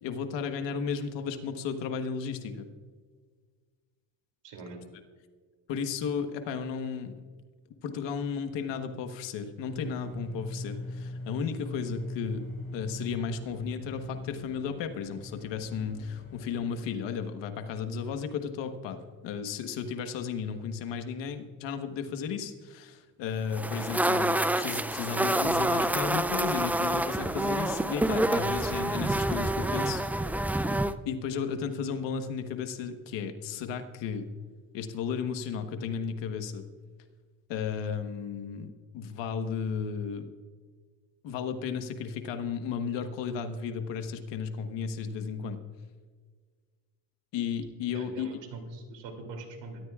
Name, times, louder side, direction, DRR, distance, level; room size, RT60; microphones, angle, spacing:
voice 1, 0.0-2.7 5.7-7.2 7.8-30.0 31.0-34.3 34.7-36.7 37.5-40.3 41.2-45.6 47.3-48.3, left 6 dB, 90° left, 7 dB, 1.4 m, -34 dB
voice 2, 4.4-4.8 47.9-49.8, right 3 dB, 80° right, 4 dB, 3.0 m, -43 dB
sound 1, 9.7-16.9, left 1 dB, 35° left, 4.0 m, -40 dB
sound 2, 23.5-30.9, right 1 dB, 5° right, 0.3 m, -27 dB
22.5 x 13.5 x 2.4 m, 1.5 s
cardioid pair, 95°, 42 cm